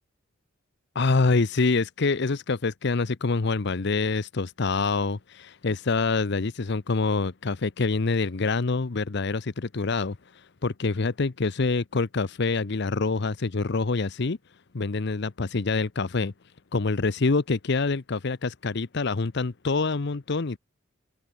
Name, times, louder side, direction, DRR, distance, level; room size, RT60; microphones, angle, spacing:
voice 1, 0.9-14.4 14.7-16.3 16.7-20.6, left 3 dB, 60° left, 0.7 m, -26 dB
head